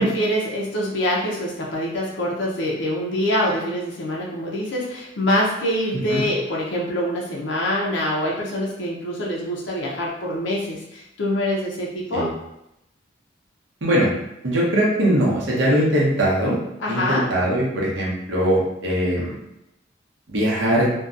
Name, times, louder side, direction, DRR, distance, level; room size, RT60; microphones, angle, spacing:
voice 1, 0.0-12.3 16.8-17.3, left 1 dB, 75° left, -4 dB, 0.5 m, -25 dB
voice 2, 14.4-16.6 16.9-19.3 20.3-20.9, right 1 dB, 90° right, -4 dB, 0.8 m, -20 dB
2.6 x 2.2 x 2.4 m, 0.83 s
head